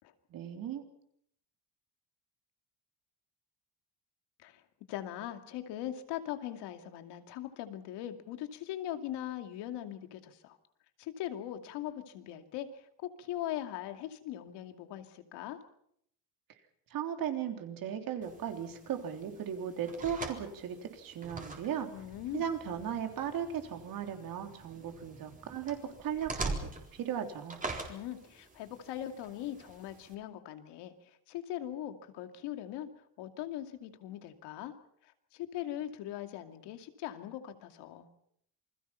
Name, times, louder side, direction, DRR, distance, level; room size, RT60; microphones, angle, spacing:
voice 1, 0.3-0.8 16.9-21.9 22.3-27.6, right 8 dB, 55° right, 5 dB, 3.6 m, -37 dB
voice 2, 4.9-10.6 11.0-15.6 21.9-22.4 27.9-32.9 33.2-34.7 35.0-38.1, left 12 dB, 85° left, 7 dB, 2.5 m, -40 dB
sound 1, 18.2-30.1, right 3 dB, 20° right, 3.9 m, -44 dB
28.0 x 21.0 x 5.8 m, 0.69 s
cardioid pair, 135°, 40 cm